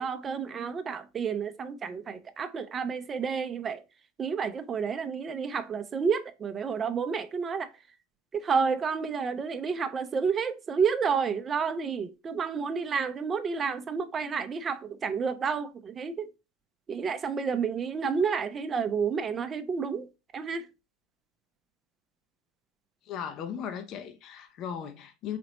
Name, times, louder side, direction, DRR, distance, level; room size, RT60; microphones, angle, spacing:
voice 1, 0.0-3.8 4.2-7.7 8.3-16.3 16.9-20.1 20.3-20.7, right 6 dB, 30° right, 0.6 m, -30 dB
voice 2, 23.0-25.4, left 8 dB, 50° left, 0.6 m, -37 dB
4.1 x 3.0 x 2.9 m
hypercardioid pair, 80°, 0 cm